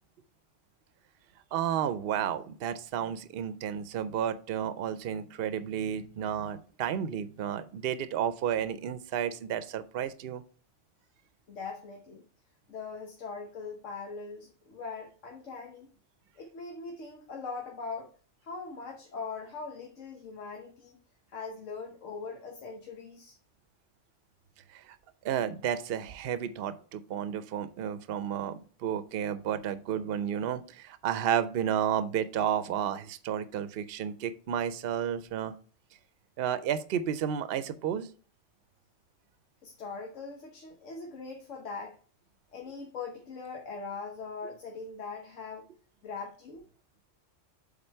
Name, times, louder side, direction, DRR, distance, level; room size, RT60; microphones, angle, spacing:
voice 1, 1.5-10.4 24.7-25.0 25.2-35.5 36.4-38.1, right 9 dB, 60° right, 13 dB, 0.7 m, -32 dB
voice 2, 11.5-12.2 12.7-15.9 16.4-18.1 18.4-21.0 21.3-23.4 39.6-42.0 42.5-45.7 46.0-46.6, left 4 dB, 85° left, 1 dB, 1.3 m, -41 dB
7.7 x 3.7 x 4.5 m, 0.41 s
omnidirectional pair, 1.3 m